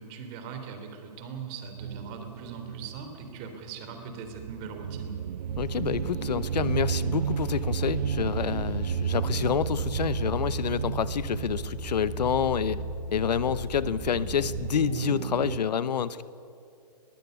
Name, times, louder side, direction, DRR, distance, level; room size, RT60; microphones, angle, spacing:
voice 1, 0.0-5.2, right 5 dB, 30° right, 6 dB, 3.2 m, -40 dB
sound 1, 1.8-15.6, right 8 dB, 80° right, 0.4 m, -34 dB
sound 2, 5.4-14.7, right 3 dB, 5° left, 7.5 m, -36 dB
voice 2, 5.6-12.8 13.1-16.2, left 7 dB, 80° left, 16 dB, 0.9 m, -28 dB
21.5 x 14.5 x 9.3 m, 2.5 s
hypercardioid pair, 145°, 21 cm